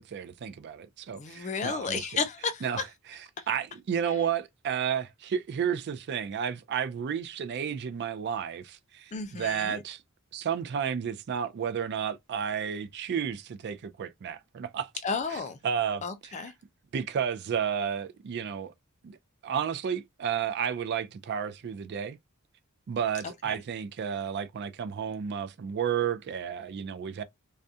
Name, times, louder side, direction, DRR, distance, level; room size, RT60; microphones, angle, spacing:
voice 1, 0.0-2.1 2.6-2.8 3.5-10.0 10.3-14.9 15.3-16.0 16.9-18.7 19.0-19.1 19.4-22.2 22.9-27.2, right 8 dB, 50° right, 0.3 m, -32 dB
voice 2, 1.1-2.8 3.4-3.5 4.1-4.2 9.1-9.8 15.0-15.6 16.0-16.5 23.2-23.6, left 5 dB, 35° left, 0.4 m, -33 dB
2.4 x 2.1 x 2.6 m
head